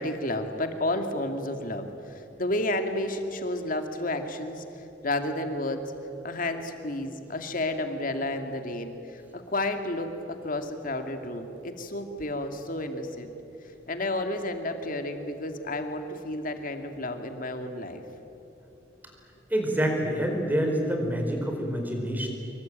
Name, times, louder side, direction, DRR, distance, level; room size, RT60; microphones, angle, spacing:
voice 1, 0.0-4.6 5.0-5.9 6.2-13.3 13.6-18.0, left 1 dB, 50° left, 6 dB, 2.4 m, -31 dB
voice 2, 19.5-22.3, equal, 10° right, 3 dB, 4.5 m, -27 dB
25.5 x 23.5 x 9.1 m, 3.0 s
head